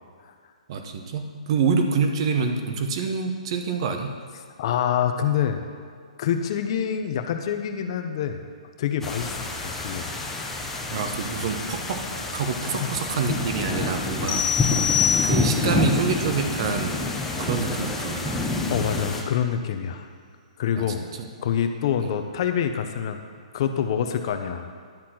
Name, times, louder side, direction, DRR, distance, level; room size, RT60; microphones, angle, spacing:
voice 1, 0.7-4.1 10.9-12.1 12.3-15.0 15.2-17.0 17.4-18.3 20.7-21.3 22.0-22.1, right 5 dB, 45° right, 5 dB, 1.1 m, -27 dB
voice 2, 4.6-5.6 6.2-8.4 8.8-9.4 9.6-10.1 12.8-12.9 18.7-20.1 20.6-21.0 21.4-23.2 23.5-24.7, left 8 dB, 45° left, 6 dB, 0.8 m, -26 dB
sound 1, 9.0-19.2, left 3 dB, 5° left, 0.8 m, -28 dB
sound 2, 14.3-15.8, left 8 dB, 30° left, 1.2 m, -24 dB
10.5 x 4.2 x 7.7 m, 2.1 s
hypercardioid pair, 155°, 4 cm